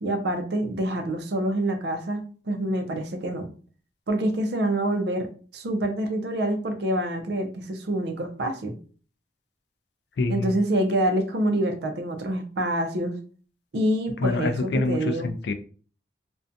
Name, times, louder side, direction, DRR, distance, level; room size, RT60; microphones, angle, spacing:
voice 1, 0.0-3.5 4.1-5.3 5.5-8.7 10.3-13.1 13.7-15.3, right 1 dB, 60° right, 0.5 m, -26 dB
voice 2, 10.2-10.5 14.2-15.5, left 3 dB, 65° left, 0.3 m, -26 dB
2.4 x 2.2 x 2.6 m
head